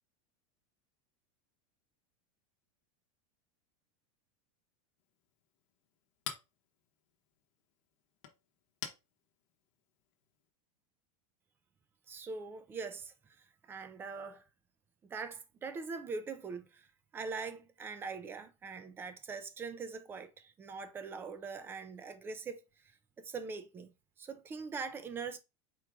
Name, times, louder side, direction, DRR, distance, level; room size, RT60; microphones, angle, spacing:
Chink clink, 5.0-10.5, left 9 dB, 60° left, 0.9 m, -50 dB
voice 1, 12.1-13.1 13.7-14.4 15.1-16.9 17.1-22.6 23.2-23.9 24.2-25.4, right 4 dB, 10° right, 0.4 m, -42 dB
4.5 x 2.4 x 4.6 m
supercardioid pair, 165°, 18 cm